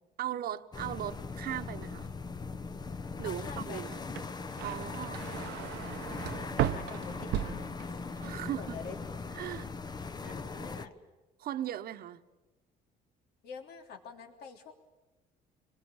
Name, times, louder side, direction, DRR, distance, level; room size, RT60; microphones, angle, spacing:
voice 1, 0.2-2.1 3.2-4.0 4.6-5.3 8.2-8.8 9.3-9.7 11.4-12.2, right 12 dB, 65° right, 11 dB, 1.2 m, -38 dB
sound 1, 0.7-10.9, left 4 dB, 25° left, 0.9 m, -40 dB
voice 2, 3.2-3.9 6.6-9.0 10.2-11.0 13.4-14.7, left 5 dB, 70° left, 4 dB, 3.3 m, -47 dB
sound 2, 4.0-8.3 8.6-9.2, right 12 dB, 85° right, 0.9 m, -36 dB
26.0 x 20.5 x 8.8 m, 1.1 s
cardioid pair, 110°, 17 cm